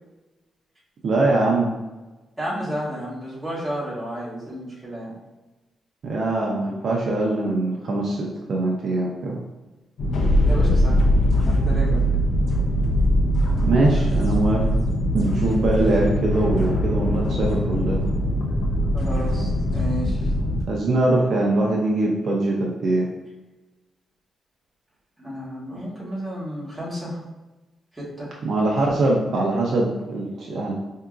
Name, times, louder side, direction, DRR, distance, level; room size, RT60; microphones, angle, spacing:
voice 1, 1.0-1.7 6.0-9.4 13.6-14.6 15.1-18.1 20.7-23.1 28.4-30.7, right 2 dB, 55° right, -2 dB, 0.6 m, -22 dB
voice 2, 2.4-5.2 10.5-11.0 11.5-12.0 18.9-20.3 25.2-27.2 27.9-28.3, equal, 5° right, -8 dB, 1.4 m, -32 dB
sound 1, 10.0-20.6, equal, 65° left, 0.6 m, -21 dB
4.5 x 2.7 x 2.4 m, 1.1 s
cardioid pair, 140°, 0 cm